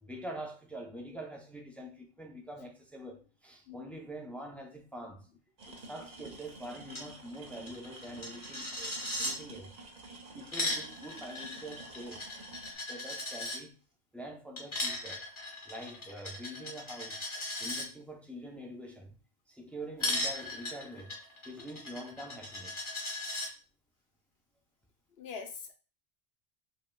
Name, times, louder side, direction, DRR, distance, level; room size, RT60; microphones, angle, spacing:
voice 1, 0.0-5.3 5.7-9.7 10.3-12.3 12.7-13.8 14.1-15.2 15.7-17.2 17.6-19.2 19.5-21.2 21.4-22.9, right 1 dB, ahead, 0.4 m, -45 dB
sound 1, 5.6-12.7, right 2 dB, 40° right, 0.7 m, -50 dB
Coin (dropping), 6.9-7.1 7.3-7.4 7.7-9.3 10.3-13.6 14.6-17.8 20.0-23.5, left 1 dB, 25° left, 1.1 m, -37 dB
voice 2, 25.2-25.7, left 5 dB, 65° left, 0.9 m, -43 dB
5.3 x 2.8 x 2.2 m
omnidirectional pair, 1.2 m